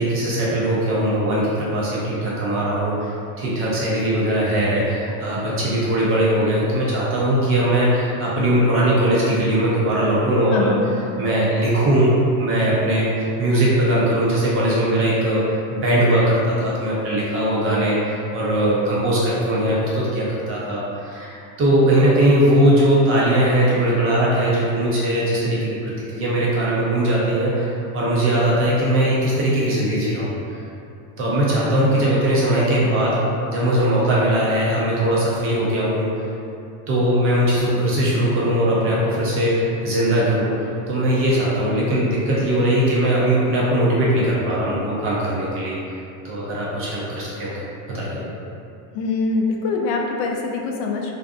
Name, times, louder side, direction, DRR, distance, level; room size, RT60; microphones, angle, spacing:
voice 1, 0.0-3.1 3.4-10.7 11.2-30.6 31.2-33.2 33.5-36.2 36.9-40.5 40.9-45.8 46.2-48.3, right 1 dB, 30° right, -7 dB, 0.4 m, -20 dB
voice 2, 10.5-10.8 48.9-51.1, left 4 dB, 70° left, 1 dB, 0.5 m, -23 dB
2.5 x 2.5 x 2.3 m, 2.6 s
supercardioid pair, 125°, 48 cm